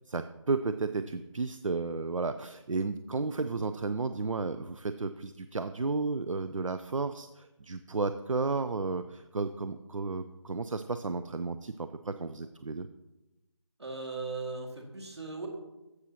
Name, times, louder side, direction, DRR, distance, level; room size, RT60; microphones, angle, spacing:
voice 1, 0.1-12.9, right 3 dB, 75° right, 10 dB, 0.5 m, -33 dB
voice 2, 13.8-15.5, right 3 dB, 55° right, 2 dB, 2.0 m, -38 dB
15.0 x 6.3 x 2.9 m, 0.99 s
figure-of-eight pair, 165°, 17 cm